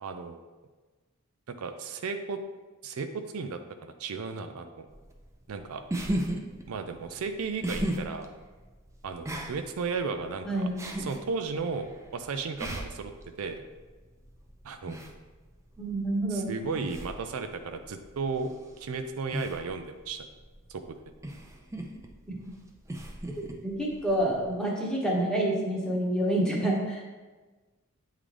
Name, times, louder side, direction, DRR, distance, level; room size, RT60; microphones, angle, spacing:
voice 1, 0.0-0.4 1.6-2.4 2.8-4.9 5.5-5.8 6.7-8.3 9.0-10.7 11.0-13.1 13.4-13.6 14.6-15.0 16.3-20.3 20.7-21.0, right 4 dB, 70° right, 7 dB, 0.4 m, -34 dB
sound 1, 4.9-24.6, right 1 dB, 15° right, 0.5 m, -38 dB
voice 2, 10.4-10.8 15.8-16.6 22.3-22.4 23.4-27.0, right 1 dB, 5° left, -3 dB, 1.0 m, -28 dB
8.4 x 3.7 x 3.3 m, 1.3 s
head